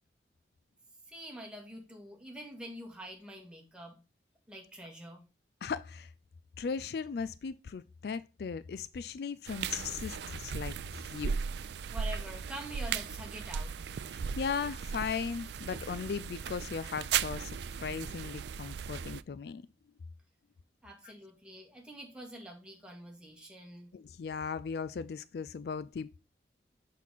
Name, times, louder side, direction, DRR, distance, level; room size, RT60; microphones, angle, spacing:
voice 1, 1.1-4.0 4.5-5.2 11.9-13.7 20.8-23.9, right 1 dB, 5° right, 2.0 m, -46 dB
voice 2, 5.6-6.1 6.6-11.4 14.1-19.6 23.9-26.2, left 6 dB, 60° left, 0.3 m, -37 dB
sound 1, 9.5-19.2, right 7 dB, 70° right, 0.4 m, -37 dB
6.4 x 5.7 x 4.0 m
head